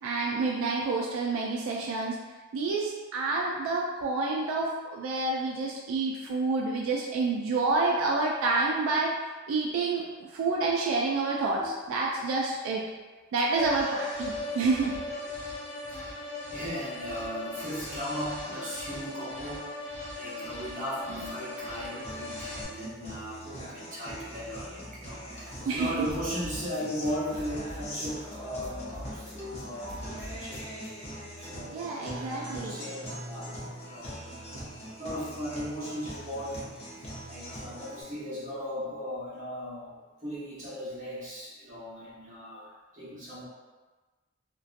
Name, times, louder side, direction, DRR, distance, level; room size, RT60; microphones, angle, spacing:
voice 1, 0.0-2.2 2.5-9.1 9.5-12.8 13.3-15.0 25.7-26.1 31.7-32.8, right 3 dB, 80° right, -2 dB, 0.3 m, -28 dB
sound 1, 13.5-22.6, left 2 dB, 75° left, 0.8 m, -38 dB
voice 2, 16.5-19.9 20.2-30.6 31.4-33.6 33.8-34.5 35.0-36.9 37.3-43.5, equal, 35° right, -9 dB, 0.8 m, -37 dB
Guitar, 22.0-38.0, equal, 30° left, 0.6 m, -42 dB
sound 2, 26.1-28.4 28.6-30.9, equal, 5° left, 0.9 m, -44 dB
2.6 x 2.2 x 2.4 m, 1.3 s
head